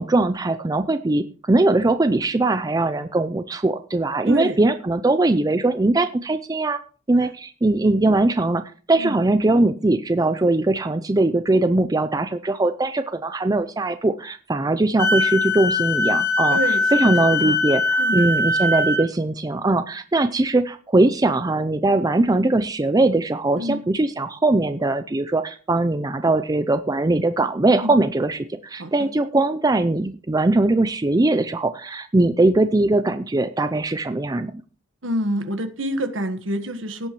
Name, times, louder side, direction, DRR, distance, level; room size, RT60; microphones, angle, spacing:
voice 1, 0.0-6.8 7.1-8.6 8.9-34.5, right 2 dB, 20° right, 10 dB, 0.5 m, -21 dB
voice 2, 4.3-4.6 9.0-9.2 16.5-17.6 18.0-18.3 23.5-23.8 27.8-27.9 28.8-29.1 35.0-37.1, right 1 dB, 80° right, 8 dB, 1.4 m, -27 dB
Wind instrument woodwind instrument, 15.0-19.0, left 3 dB, 15° left, 1.7 m, -21 dB
17.0 x 8.7 x 3.1 m, 0.38 s
head